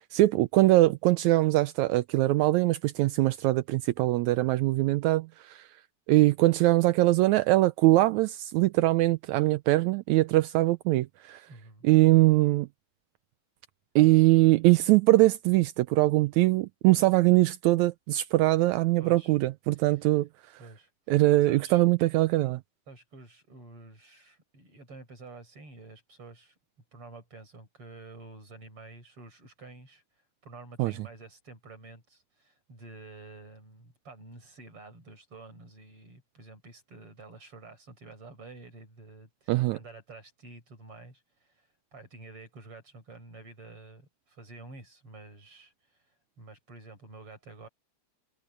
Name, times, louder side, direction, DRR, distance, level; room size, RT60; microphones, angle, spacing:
voice 1, 0.1-5.6 6.1-11.4 11.8-12.7 14.0-20.3 21.1-22.6 30.8-30.9 39.5-39.8, right 18 dB, 80° right, 1.9 m, -22 dB
voice 2, 11.5-11.9 19.0-19.3 19.7-20.0 20.6-20.9 21.4-21.8 22.9-26.5 26.9-30.0 30.4-46.0 46.4-47.7, right 3 dB, 50° right, 7.5 m, -49 dB
omnidirectional pair, 3.4 m